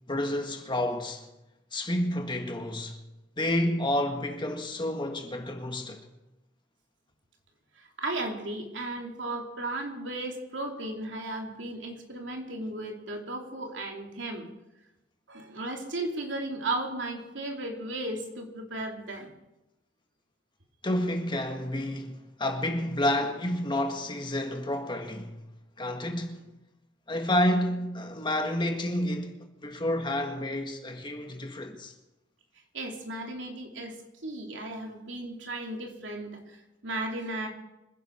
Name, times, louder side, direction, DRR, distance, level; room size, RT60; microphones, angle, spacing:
voice 1, 0.1-1.3 1.7-3.0 3.4-6.1 20.8-25.4 25.8-26.5 27.1-31.9, left 1 dB, 25° left, 1.7 m, -30 dB
voice 2, 7.7-14.5 15.3-19.3 32.7-36.6 36.8-37.5, right 2 dB, 90° right, 2.7 m, -35 dB
25.5 x 10.5 x 4.5 m
head